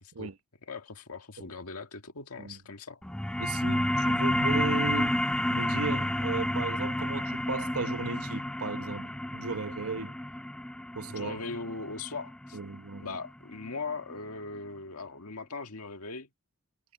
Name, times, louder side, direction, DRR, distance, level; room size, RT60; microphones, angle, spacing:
voice 1, 0.6-3.0 11.1-12.6 13.0-16.3, left 4 dB, 80° left, 1.8 m, -39 dB
sound 1, 3.0-14.1, left 1 dB, 5° left, 0.3 m, -31 dB
voice 2, 3.4-10.1 10.9-11.4 12.5-13.2, right 4 dB, 75° right, 1.1 m, -36 dB
head